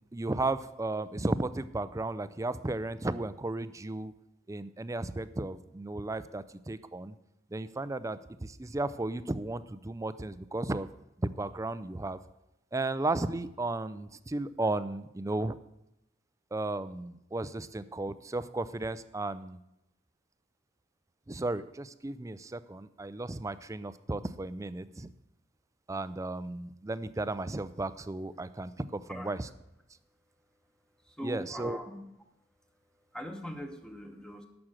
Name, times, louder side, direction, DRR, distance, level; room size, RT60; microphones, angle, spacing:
voice 1, 0.1-4.1 4.5-7.1 7.5-10.9 11.2-12.2 12.7-15.5 16.5-19.6 21.3-25.1 25.9-29.5 31.2-31.8, right 2 dB, 15° right, 14 dB, 0.4 m, -34 dB
voice 2, 31.0-32.1 33.1-34.5, equal, 5° left, 5 dB, 1.0 m, -41 dB
11.5 x 6.1 x 7.5 m, 0.85 s
head